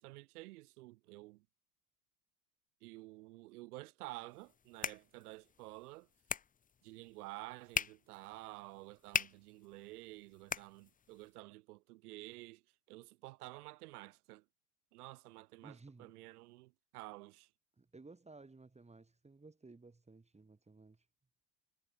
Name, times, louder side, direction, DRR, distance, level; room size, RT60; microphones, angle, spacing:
voice 1, 0.0-1.4 2.8-6.1 6.8-12.6 12.9-14.4 14.9-17.5, right 20 dB, 85° right, 1.7 m, -51 dB
sound 1, 4.3-11.3, left 7 dB, 20° left, 0.7 m, -43 dB
voice 2, 15.6-16.2 17.8-21.1, right 3 dB, 15° right, 5.2 m, -57 dB
supercardioid pair, 95°, 45 cm